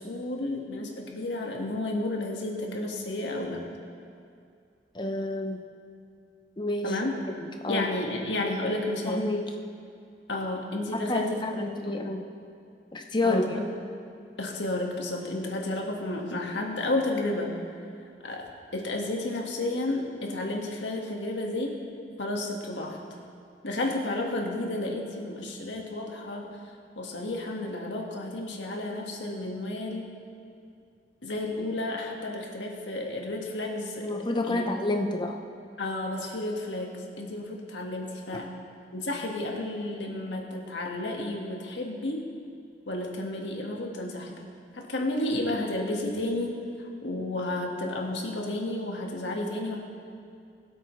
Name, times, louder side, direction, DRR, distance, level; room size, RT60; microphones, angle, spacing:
voice 1, 0.0-3.6 6.8-7.1 7.7-9.2 10.3-11.7 13.2-13.7 14.4-17.5 18.2-21.7 22.2-23.0 23.6-26.5 27.0-30.1 31.2-34.1 34.4-34.6 35.8-38.5 38.9-42.3 42.9-44.4 44.7-49.8, left 2 dB, 90° left, 0 dB, 1.7 m, -32 dB
voice 2, 4.9-5.6 6.6-7.0 7.4-7.9 9.1-9.5 10.9-12.3 12.9-13.6 34.0-35.4, left 2 dB, 25° left, 4 dB, 0.8 m, -29 dB
20.5 x 8.2 x 3.2 m, 2.4 s
head